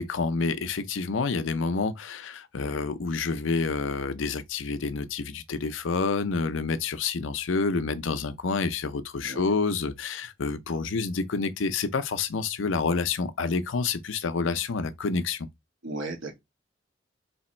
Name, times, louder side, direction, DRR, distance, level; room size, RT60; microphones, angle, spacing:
voice 1, 0.0-15.5, left 4 dB, 85° left, 0.6 m, -28 dB
voice 2, 15.8-16.3, right 2 dB, 85° right, 1.3 m, -35 dB
3.4 x 3.0 x 4.3 m
head